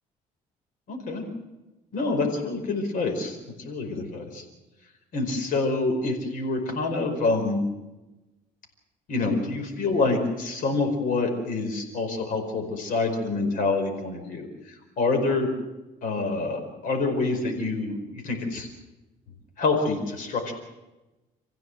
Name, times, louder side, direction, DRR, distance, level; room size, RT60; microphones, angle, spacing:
voice 1, 0.9-1.3 1.9-3.4 3.6-4.4 5.1-7.6 9.1-14.5 15.0-15.5 16.0-18.7 19.6-20.5, left 3 dB, 65° left, 4 dB, 5.0 m, -26 dB
26.0 x 15.5 x 7.9 m, 1.0 s
cardioid pair, 115°, 15 cm